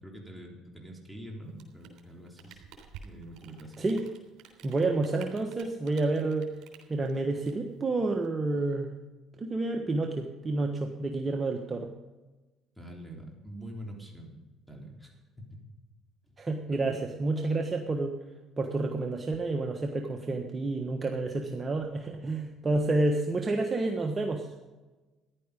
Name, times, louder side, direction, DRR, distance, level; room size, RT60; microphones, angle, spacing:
voice 1, 0.0-2.6 3.0-3.9 12.8-14.3 14.7-15.6 16.7-17.1, right 1 dB, 5° right, -1 dB, 3.8 m, -45 dB
Rain, 1.5-8.3, right 7 dB, 70° right, 3.4 m, -52 dB
voice 2, 4.6-6.5 6.9-8.9 9.4-11.9 16.4-18.2 18.6-24.7, right 2 dB, 25° right, 3 dB, 1.4 m, -29 dB
14.5 x 11.0 x 5.3 m, 1.2 s
cardioid pair, 95°, 0 cm